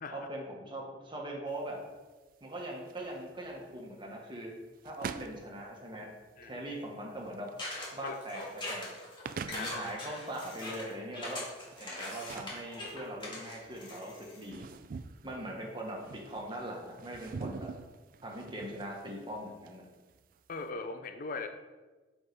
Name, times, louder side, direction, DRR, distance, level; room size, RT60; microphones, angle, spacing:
voice 1, 0.1-1.8 2.4-4.5 4.8-6.1 6.4-7.5 7.9-8.9 9.5-11.4 11.8-14.6 15.2-17.7 18.2-19.8, right 1 dB, 25° right, 0 dB, 1.4 m, -41 dB
sound 1, 1.5-20.7, right 5 dB, 50° right, 0.3 m, -47 dB
sound 2, 7.6-14.5, left 1 dB, 25° left, 2.0 m, -41 dB
voice 2, 8.0-8.5 9.5-9.7 20.5-21.5, left 4 dB, 50° left, 8 dB, 0.5 m, -40 dB
7.6 x 4.7 x 4.7 m, 1.3 s
head